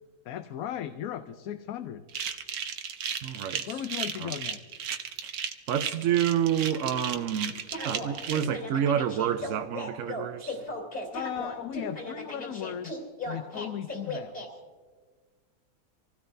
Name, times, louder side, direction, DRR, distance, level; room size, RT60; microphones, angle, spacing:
voice 1, 0.2-2.1 3.7-4.8 11.1-14.6, left 10 dB, 75° left, 1.1 m, -37 dB
sound 1, 2.1-8.4, right 7 dB, 80° right, 1.3 m, -34 dB
voice 2, 3.2-3.6 4.2-4.3 5.7-7.5 7.8-10.6, right 9 dB, 65° right, 0.9 m, -28 dB
sound 2, 7.7-14.5, left 1 dB, 40° left, 3.0 m, -37 dB
25.5 x 16.5 x 2.6 m
omnidirectional pair, 1.5 m